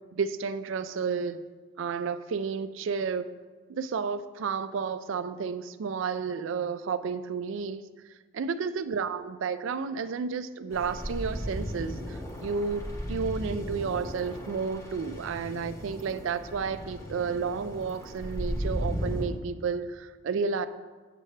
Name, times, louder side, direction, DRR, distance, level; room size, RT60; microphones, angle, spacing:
voice 1, 0.1-1.4 1.8-3.3 3.7-7.8 8.3-20.7, right 5 dB, 65° right, 13 dB, 0.3 m, -31 dB
sound 1, 10.7-19.2, equal, 15° left, 0.8 m, -36 dB
7.4 x 6.7 x 3.2 m, 1.4 s
head